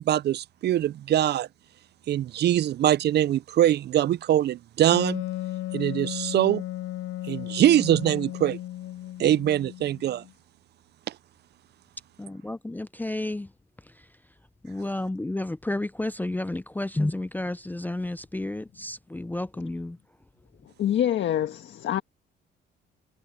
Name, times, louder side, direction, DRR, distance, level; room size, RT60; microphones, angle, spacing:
voice 1, 0.0-1.5 2.1-5.2 5.7-6.6 7.2-8.6 9.2-10.2, right 12 dB, 55° right, 0.4 m, -23 dB
Wind instrument woodwind instrument, 4.9-10.3, left 14 dB, 85° left, 0.6 m, -35 dB
voice 2, 12.2-13.5 14.6-20.0, left 2 dB, 10° left, 0.5 m, -31 dB
voice 3, 20.8-22.0, left 10 dB, 70° left, 1.5 m, -25 dB
cardioid pair, 90°, 20 cm